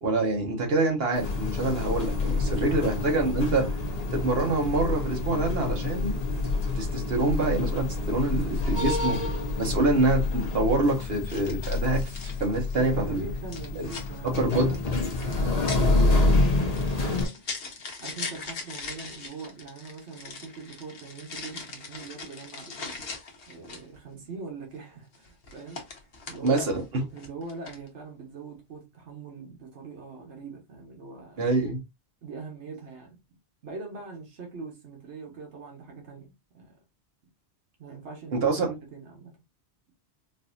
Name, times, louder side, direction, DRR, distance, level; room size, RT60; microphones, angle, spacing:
voice 1, 0.0-3.7 4.1-6.2 6.7-9.2 9.6-13.2 13.8-13.9 14.2-14.7 26.4-27.0 31.4-31.8 38.3-38.7, right 2 dB, 60° right, 1.4 m, -26 dB
sound 1, 1.1-17.3, left 3 dB, 40° left, 0.8 m, -27 dB
voice 2, 2.3-3.6 8.1-10.2 12.8-17.4 17.7-23.0 23.5-26.6 27.1-31.4 32.2-33.2 33.6-36.7 37.8-39.3, right 4 dB, 85° right, 1.3 m, -42 dB
sound 2, 11.3-12.9 13.5-24.0 25.1-26.8 27.2-27.9, left 4 dB, 60° left, 1.1 m, -41 dB
3.9 x 2.7 x 2.4 m
omnidirectional pair, 1.1 m